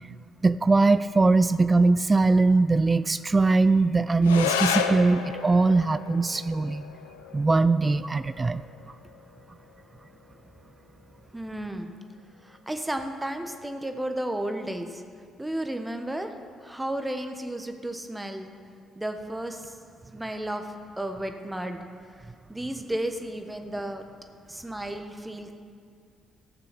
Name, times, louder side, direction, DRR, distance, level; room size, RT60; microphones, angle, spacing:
voice 1, 0.4-6.8 7.3-8.6, right 3 dB, 30° right, 14 dB, 0.3 m, -21 dB
sound 1, 4.2-13.2, left 7 dB, 90° left, 0.5 m, -34 dB
voice 2, 11.3-11.9 12.4-15.0 15.4-16.3 16.6-18.5 18.9-19.7 20.1-21.8 22.5-24.0 24.5-25.5, right 1 dB, 15° right, 6 dB, 1.3 m, -33 dB
15.0 x 6.7 x 6.2 m, 2.1 s
hypercardioid pair, 50°, 0 cm